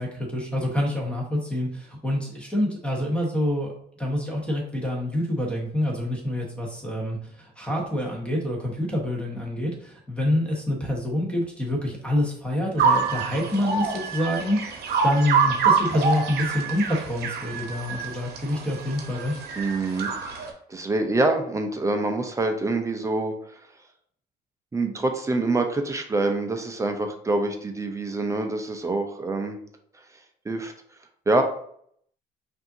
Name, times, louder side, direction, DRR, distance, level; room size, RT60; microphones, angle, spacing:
voice 1, 0.0-3.7 4.0-19.4, left 1 dB, 5° left, -1 dB, 1.2 m, -27 dB
sound 1, 12.8-20.5, right 5 dB, 70° right, 0.9 m, -26 dB
voice 2, 19.6-20.1 20.7-23.3 24.7-29.6 30.4-30.7 31.3-31.4, right 2 dB, 20° right, 5 dB, 0.6 m, -25 dB
5.3 x 2.7 x 2.7 m, 0.65 s
cardioid pair, 110°, 17 cm